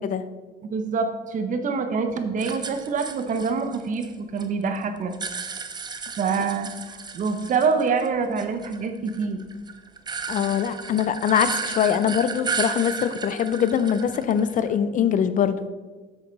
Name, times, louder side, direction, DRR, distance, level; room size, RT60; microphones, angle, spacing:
voice 1, 0.6-5.1 6.2-6.7 7.1-9.4, right 5 dB, 50° right, 7 dB, 1.0 m, -25 dB
sound 1, 2.4-4.5 4.8-8.1 8.4-14.7, right 5 dB, 25° right, 0.6 m, -33 dB
voice 2, 10.3-15.6, left 8 dB, 50° left, 12 dB, 0.5 m, -23 dB
7.9 x 6.7 x 4.0 m, 1.3 s
cardioid pair, 110°, 17 cm